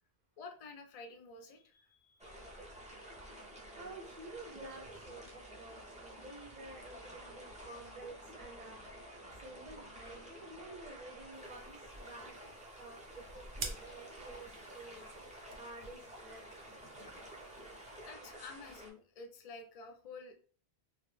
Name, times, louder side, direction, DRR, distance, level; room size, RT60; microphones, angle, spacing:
voice 1, 0.4-2.4 18.0-20.4, left 4 dB, 55° left, 5 dB, 0.4 m, -50 dB
sound 1, 2.2-18.9, right 1 dB, 10° right, 0.3 m, -51 dB
voice 2, 3.7-8.8 9.4-15.1 15.6-16.8, right 2 dB, 50° right, 2 dB, 0.6 m, -51 dB
sound 2, 11.3-18.1, right 5 dB, 80° right, 0.8 m, -51 dB
2.4 x 2.0 x 3.1 m, 0.43 s
omnidirectional pair, 1.1 m